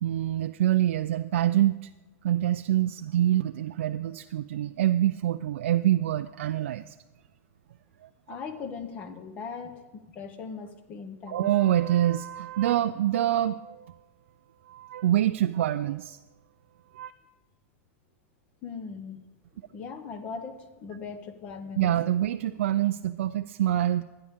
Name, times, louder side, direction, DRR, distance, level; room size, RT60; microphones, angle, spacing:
voice 1, 0.0-1.9 2.2-6.9 8.0-8.4 11.3-14.0 14.7-16.2 16.9-17.1 21.8-24.0, right 12 dB, 65° right, 9 dB, 0.4 m, -26 dB
voice 2, 8.3-11.5 18.6-19.2 19.7-21.9, left 5 dB, 20° left, 10 dB, 0.8 m, -39 dB
23.5 x 9.9 x 3.6 m, 1.1 s
supercardioid pair, 170°, 7 cm